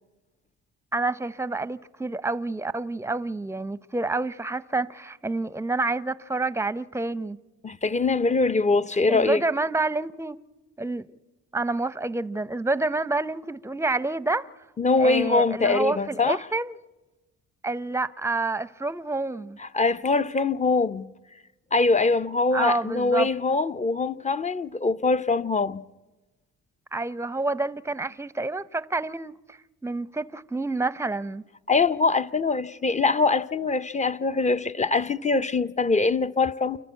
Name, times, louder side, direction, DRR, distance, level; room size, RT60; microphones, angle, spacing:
voice 1, 0.9-7.4 9.1-10.4 10.8-11.1 11.5-14.5 15.0-16.8 17.6-19.6 22.5-23.3 26.9-31.4, right 2 dB, 10° right, 0.7 m, -28 dB
voice 2, 7.6-9.4 14.8-16.4 19.6-21.1 21.7-25.8 31.7-36.8, left 3 dB, 25° left, 0.7 m, -23 dB
29.0 x 12.0 x 8.2 m
cardioid pair, 90°, 30 cm